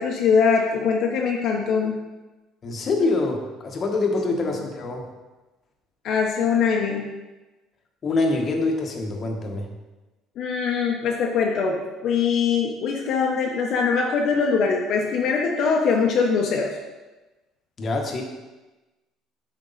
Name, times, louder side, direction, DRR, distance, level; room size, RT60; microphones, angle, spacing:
voice 1, 0.0-2.0 6.0-7.0 10.4-16.7, left 5 dB, 60° left, -1 dB, 0.9 m, -22 dB
voice 2, 2.6-5.1 8.0-9.7 17.8-18.2, left 3 dB, 35° left, 1 dB, 1.2 m, -25 dB
8.1 x 4.4 x 4.0 m, 1.1 s
cardioid pair, 120°, 0 cm